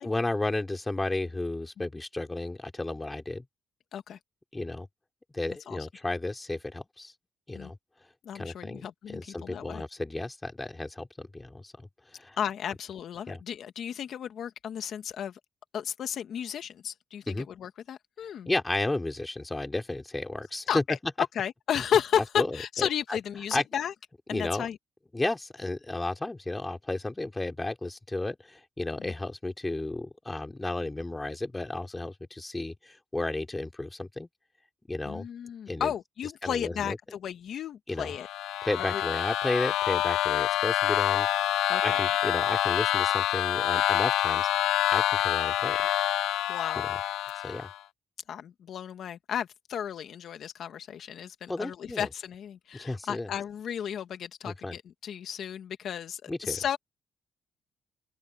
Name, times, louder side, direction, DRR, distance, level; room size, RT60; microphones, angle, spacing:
voice 1, 0.0-3.4 4.5-4.9 5.3-7.1 7.5-7.8 8.3-12.4 13.3-13.4 17.3-17.5 18.5-20.8 22.4-23.2 23.5-23.6 24.3-24.7 25.1-34.3 34.9-35.3 35.7-35.9 36.4-37.0 37.9-38.1 38.6-44.7 44.9-45.9 46.7-46.9 47.4-47.7 51.5-52.1 52.7-53.3 54.4-54.8 56.3-56.6, left 2 dB, 15° left, 4.2 m, -33 dB
voice 2, 8.2-9.8 12.4-15.4 15.7-17.2 17.6-18.5 20.7-23.9 24.3-24.8 29.0-29.1 35.0-38.3 38.9-39.0 41.7-42.0 46.5-46.8 48.3-56.8, left 9 dB, 65° left, 1.4 m, -33 dB
sound 1, 38.1-47.8, left 15 dB, 90° left, 0.3 m, -27 dB
open air
cardioid pair, 90°, 0 cm